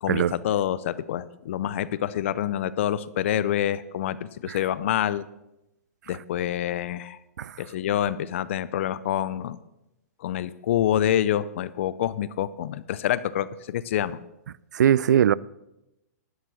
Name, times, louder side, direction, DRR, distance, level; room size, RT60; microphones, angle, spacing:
voice 1, 0.0-5.3 6.1-7.2 7.6-9.6 10.2-14.2, left 11 dB, 45° left, 0.5 m, -27 dB
voice 2, 14.7-15.3, right 9 dB, 85° right, 0.4 m, -20 dB
11.0 x 7.4 x 6.3 m
hypercardioid pair, 170°, 9 cm